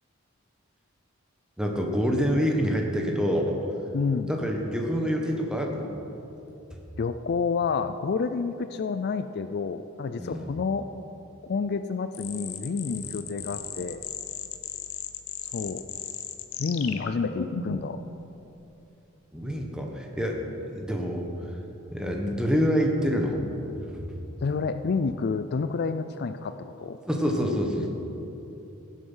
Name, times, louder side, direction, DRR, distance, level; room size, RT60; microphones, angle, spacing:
voice 1, 1.6-3.6 4.2-5.9 10.2-10.5 13.0-13.1 19.3-21.3 21.9-23.4 23.9-24.0 27.1-27.9, equal, 5° right, 1 dB, 1.4 m, -27 dB
voice 2, 3.9-4.3 7.0-10.9 11.4-14.0 15.5-15.8 16.6-18.0 24.4-27.0, left 5 dB, 50° left, 10 dB, 0.4 m, -29 dB
sound 1, 12.1-18.0, left 7 dB, 85° left, 0.8 m, -36 dB
17.5 x 7.8 x 5.6 m, 2.9 s
head